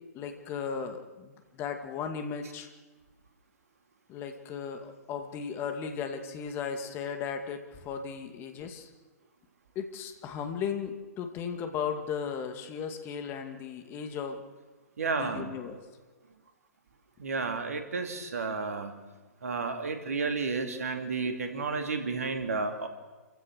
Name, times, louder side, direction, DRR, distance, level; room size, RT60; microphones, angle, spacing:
voice 1, 0.1-2.7 4.1-8.9 9.8-14.4 15.2-15.8, left 6 dB, 25° left, 6 dB, 2.3 m, -36 dB
voice 2, 15.0-15.5 17.2-18.9 19.4-22.9, right 4 dB, 65° right, 6 dB, 2.9 m, -32 dB
28.5 x 15.5 x 6.3 m, 1.3 s
figure-of-eight pair, 115°, 9 cm